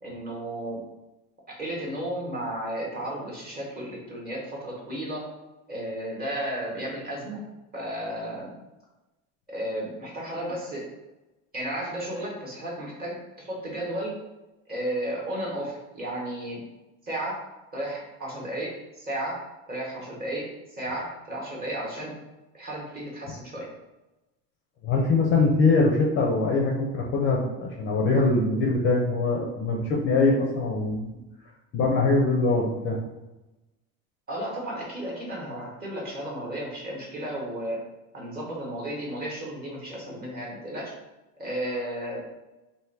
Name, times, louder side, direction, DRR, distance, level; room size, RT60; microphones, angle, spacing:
voice 1, 0.0-0.8 1.5-5.3 5.7-7.4 7.7-8.5 9.5-10.8 11.5-14.1 14.7-16.6 17.0-17.4 17.7-19.4 19.7-22.1 22.5-23.7 34.3-37.8 38.1-40.9 41.4-42.3, right 1 dB, 25° right, -3 dB, 0.9 m, -33 dB
voice 2, 24.8-31.2 31.7-33.0, left 3 dB, 35° left, -1 dB, 0.4 m, -23 dB
3.4 x 2.6 x 4.5 m, 1.0 s
cardioid pair, 175°, 36 cm